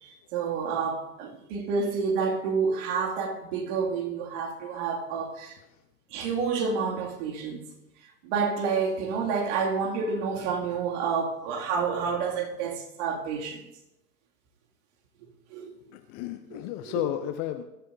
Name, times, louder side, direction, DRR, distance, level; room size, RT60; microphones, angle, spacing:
voice 1, 0.0-5.6 6.1-7.7 8.2-13.6 15.5-15.7 16.5-17.0, right 5 dB, 45° right, 2.6 m, -29 dB
voice 2, 15.9-17.6, left 12 dB, 25° left, 0.6 m, -32 dB
21.0 x 12.5 x 2.7 m
hypercardioid pair, 110°, 50 cm